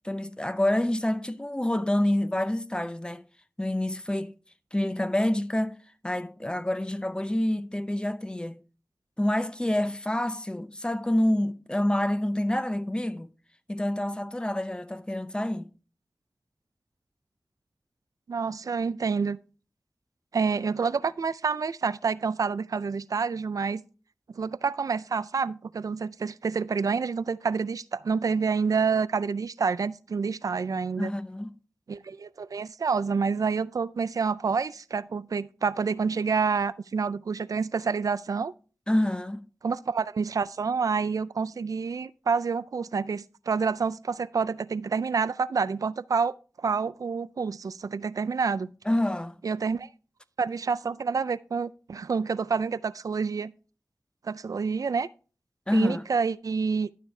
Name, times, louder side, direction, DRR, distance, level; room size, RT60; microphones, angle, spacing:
voice 1, 0.0-3.2 3.6-4.3 4.7-5.8 6.0-8.6 9.2-13.3 13.7-15.7 31.0-31.6 38.9-39.5 48.9-49.3 55.7-56.0, left 1 dB, 15° left, 0.7 m, -27 dB
voice 2, 18.3-19.4 20.3-23.8 24.3-31.1 31.9-38.5 39.6-46.3 46.6-48.7 49.4-49.9 50.4-53.5 54.2-55.1 55.7-56.9, right 5 dB, 85° right, 0.4 m, -28 dB
12.0 x 6.4 x 3.3 m
wide cardioid pair, 60°, 6 cm